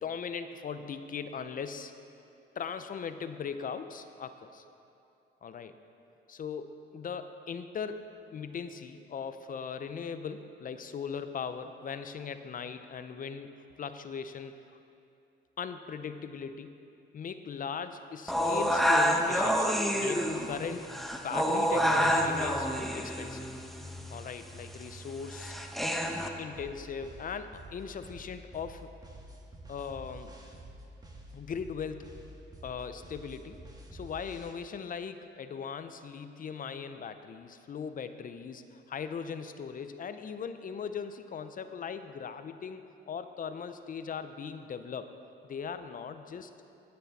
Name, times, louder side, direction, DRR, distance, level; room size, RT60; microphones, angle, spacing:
voice 1, 0.0-1.9 2.6-4.6 5.4-5.7 6.3-13.5 13.8-14.5 15.6-16.8 17.1-20.9 21.1-22.7 22.9-23.5 24.1-25.5 26.4-28.9 29.7-30.3 31.3-32.1 32.6-33.6 33.9-45.1 45.5-46.5, left 6 dB, 45° left, 10 dB, 0.5 m, -39 dB
sound 1, 18.3-26.3, equal, ahead, 0.8 m, -28 dB
sound 2, 26.5-34.5, right 1 dB, 20° right, 1.5 m, -49 dB
16.5 x 6.7 x 4.1 m, 2.6 s
cardioid pair, 90°, 20 cm